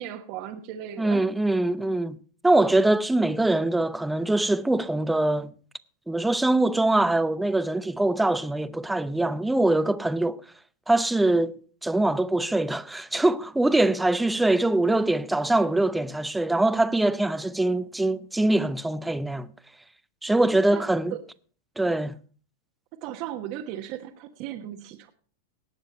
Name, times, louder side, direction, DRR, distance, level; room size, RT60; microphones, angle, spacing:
voice 1, 0.0-1.3 20.7-20.8 21.1-21.2 22.9-25.1, right 11 dB, 50° right, 1.2 m, -36 dB
voice 2, 1.0-2.2 2.4-5.5 6.1-10.4 10.9-11.6 11.8-19.5 20.2-21.1 21.8-22.1, right 2 dB, 5° right, 0.7 m, -23 dB
18.0 x 6.9 x 4.4 m
hypercardioid pair, 110°, 0 cm